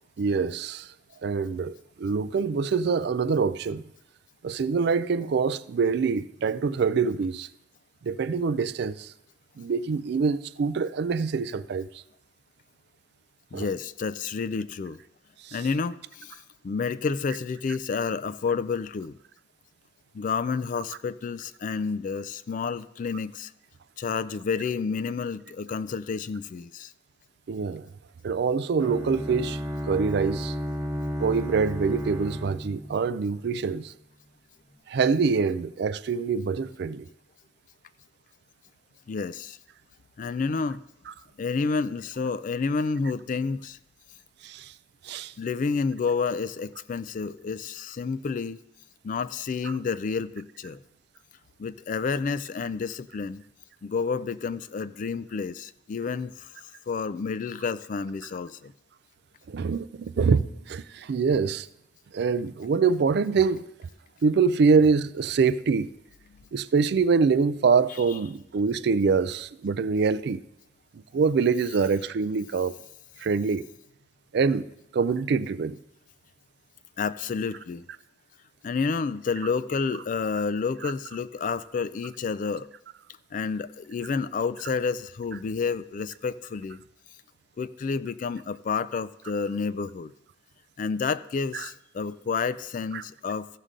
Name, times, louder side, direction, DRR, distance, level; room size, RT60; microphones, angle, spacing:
voice 1, 0.2-0.9 1.2-3.8 4.4-7.5 8.0-9.1 9.6-11.9 13.5-13.7 15.4-15.6 27.5-27.9 28.2-29.6 29.9-30.5 31.2-33.9 34.9-37.1 44.4-44.7 45.0-45.3 59.5-61.7 62.1-63.6 64.2-65.9 66.5-70.4 70.9-72.7 73.2-73.6 74.3-74.6 74.9-75.8 80.8-80.9 91.5-91.7 92.9-93.0, right 5 dB, 60° right, 0.4 m, -25 dB
voice 2, 13.5-15.0 15.5-16.4 16.6-19.2 20.1-23.5 24.0-26.9 39.1-39.6 40.2-40.8 41.4-43.8 45.4-48.6 49.0-50.8 51.6-53.4 53.8-56.5 56.9-58.7 77.0-77.9 78.6-82.7 83.3-86.8 87.6-90.1 90.8-93.5, left 5 dB, 45° left, 0.3 m, -30 dB
Bowed string instrument, 28.8-33.7, equal, 20° right, 1.2 m, -33 dB
15.0 x 6.6 x 3.7 m
head